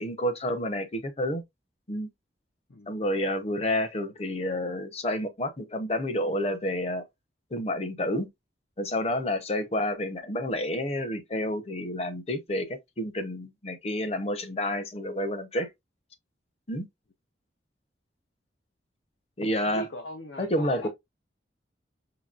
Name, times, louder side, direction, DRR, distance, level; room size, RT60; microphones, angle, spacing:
voice 1, 0.0-1.4 1.9-2.1 2.9-7.0 7.5-8.3 8.8-15.7 16.7-16.9 19.4-19.8 20.4-20.9, left 1 dB, 35° left, 0.8 m, -29 dB
voice 2, 19.7-20.9, equal, 85° left, 0.8 m, -40 dB
5.6 x 2.9 x 2.4 m
head